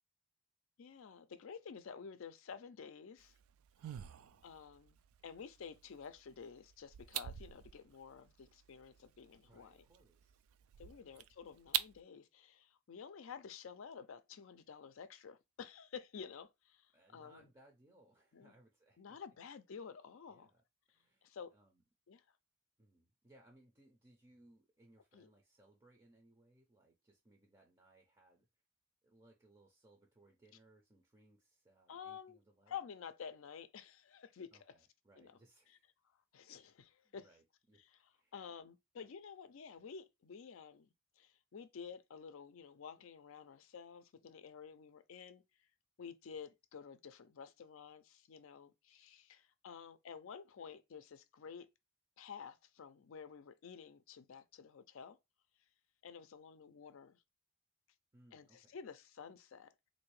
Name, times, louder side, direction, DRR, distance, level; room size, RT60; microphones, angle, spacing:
voice 1, 0.8-3.3 4.4-5.0 5.2-9.8 10.8-17.5 18.3-18.5 19.0-20.5 21.2-21.5 22.1-22.2 25.1-25.3 31.9-32.4 32.7-34.7 35.2-35.4 36.3-37.3 37.8-40.9 41.2-45.4 46.0-51.7 52.2-55.2 56.0-57.2 58.3-59.9, left 6 dB, 70° left, 0.4 m, -51 dB
sound 1, 3.2-12.0, right 12 dB, 80° right, 0.3 m, -46 dB
voice 2, 9.5-10.4 10.8-11.1 16.9-19.2 20.3-21.8 22.8-28.4 29.0-32.8 34.5-35.8 37.0-38.3 58.1-58.8, right 1 dB, 20° right, 0.5 m, -67 dB
3.5 x 2.6 x 3.1 m
head